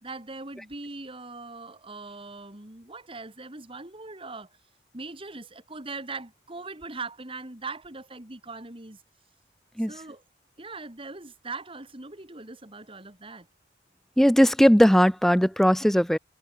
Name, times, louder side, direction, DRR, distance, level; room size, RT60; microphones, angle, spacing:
voice 1, 0.0-4.5 4.9-9.0 9.9-10.2 10.6-13.5, right 3 dB, 30° right, 2.6 m, -40 dB
voice 2, 14.2-16.2, equal, ahead, 0.7 m, -18 dB
head